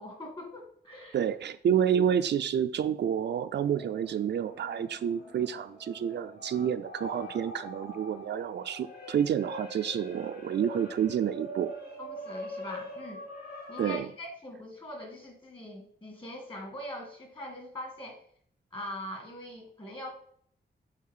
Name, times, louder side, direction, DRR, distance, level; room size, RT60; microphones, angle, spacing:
voice 1, 0.0-1.2 12.0-13.2 13.7-18.2 18.7-20.1, left 1 dB, 25° left, 2 dB, 2.1 m, -42 dB
voice 2, 1.1-11.7 13.8-14.1, right 9 dB, 75° right, 10 dB, 0.4 m, -29 dB
sound 1, 3.6-14.0, equal, 60° left, 2.0 m, -43 dB
6.6 x 4.0 x 5.5 m, 0.62 s
wide cardioid pair, 140°, 18 cm